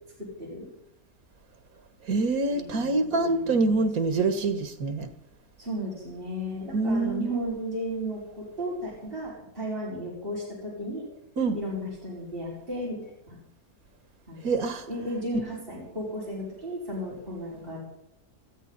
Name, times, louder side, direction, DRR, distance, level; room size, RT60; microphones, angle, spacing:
voice 1, 0.2-0.7 2.5-3.8 5.6-11.0 11.5-13.4 14.3-14.5 14.9-17.8, equal, 40° right, -6 dB, 5.5 m, -35 dB
voice 2, 2.1-5.1 6.7-7.5 11.4-11.6 14.4-14.9, right 3 dB, 90° right, 8 dB, 2.0 m, -25 dB
20.0 x 14.5 x 4.1 m, 0.83 s
omnidirectional pair, 1.5 m